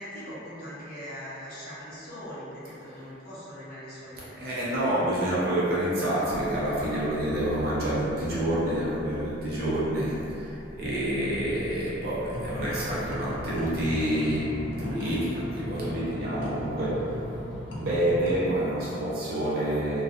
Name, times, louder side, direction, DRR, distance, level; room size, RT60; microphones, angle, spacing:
voice 1, 0.0-4.7 16.3-16.6, equal, 45° left, -11 dB, 0.8 m, -41 dB
voice 2, 4.4-17.2 17.7-20.0, right 1 dB, 50° right, -9 dB, 0.6 m, -28 dB
sound 1, 6.3-14.0, equal, 5° left, 0.3 m, -45 dB
sound 2, 12.3-18.5, left 1 dB, 80° left, 0.5 m, -38 dB
2.3 x 2.3 x 2.6 m, 2.8 s
head